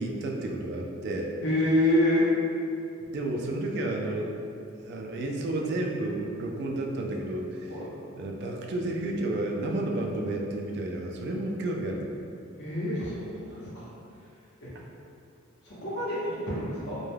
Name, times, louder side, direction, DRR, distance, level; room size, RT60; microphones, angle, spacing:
voice 1, 0.0-1.3 3.1-4.4 4.8-7.8 8.1-12.1 14.8-14.9, right 1 dB, 55° right, 0 dB, 0.3 m, -31 dB
voice 2, 1.4-2.2 7.7-7.9 12.6-13.2 13.5-13.8 14.6-14.7 15.6-17.0, left 1 dB, 55° left, -8 dB, 0.8 m, -27 dB
2.2 x 2.1 x 3.2 m, 2.5 s
head